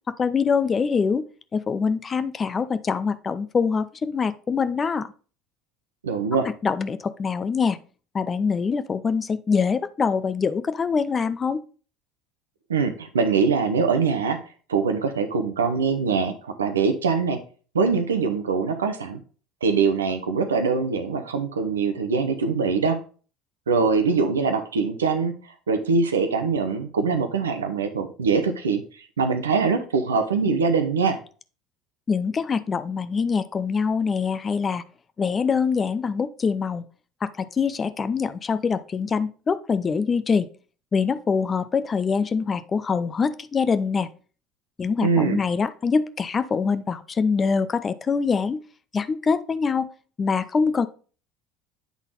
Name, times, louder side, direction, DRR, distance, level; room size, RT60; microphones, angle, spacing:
voice 1, 0.1-1.3 1.5-5.1 6.4-7.8 8.1-11.6 32.1-34.8 35.2-36.8 37.2-40.5 40.9-44.1 44.8-48.6 48.9-49.9 50.2-50.9, left 5 dB, 30° left, 14 dB, 0.5 m, -24 dB
voice 2, 6.0-6.5 12.7-14.4 14.7-17.4 17.7-19.2 19.6-23.0 23.7-25.3 25.7-28.8 29.2-31.2 45.0-45.4, right 5 dB, 85° right, 8 dB, 0.7 m, -23 dB
8.3 x 3.9 x 3.9 m, 0.39 s
hypercardioid pair, 65°, 0 cm